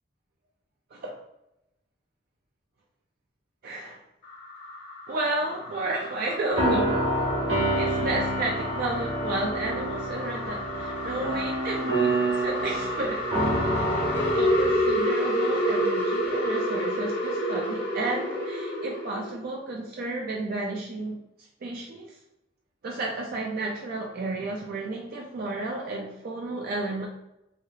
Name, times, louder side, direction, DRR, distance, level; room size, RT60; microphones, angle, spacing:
voice 1, 3.6-4.0 5.1-7.1 7.8-13.2 13.7-14.1 14.4-22.2 22.8-27.1, right 2 dB, 50° right, -1 dB, 0.4 m, -32 dB
sound 1, 4.2-19.4, equal, 55° left, 0.8 m, -30 dB
sound 2, 6.5-15.0, right 1 dB, 70° right, 1.3 m, -28 dB
3.2 x 2.3 x 2.7 m, 0.85 s
head